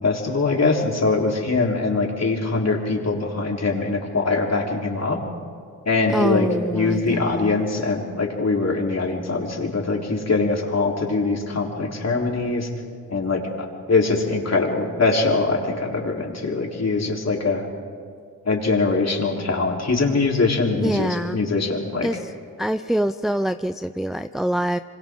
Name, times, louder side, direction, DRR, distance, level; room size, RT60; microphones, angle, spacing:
voice 1, 0.0-5.2 5.9-12.7 13.1-17.7 18.4-22.1, left 3 dB, 40° left, 0 dB, 4.0 m, -22 dB
voice 2, 6.1-7.7 20.8-21.4 22.0-22.2 22.6-24.8, right 1 dB, ahead, 10 dB, 0.5 m, -25 dB
26.0 x 25.5 x 3.9 m, 2.1 s
supercardioid pair, 45°, 39 cm